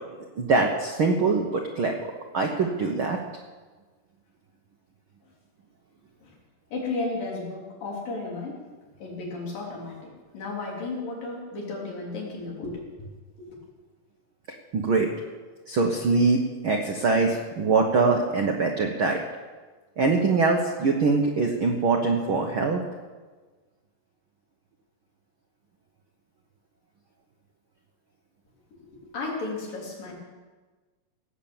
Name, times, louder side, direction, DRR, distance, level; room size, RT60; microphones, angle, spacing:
voice 1, 0.4-2.0 2.3-3.2 14.7-15.1 15.7-19.2 20.0-22.8, right 4 dB, 70° right, 2 dB, 1.2 m, -23 dB
voice 2, 6.7-8.6 9.0-13.1 13.4-13.5 28.8-30.1, left 3 dB, 80° left, -3 dB, 5.2 m, -34 dB
18.0 x 8.6 x 7.2 m, 1.4 s
omnidirectional pair, 3.9 m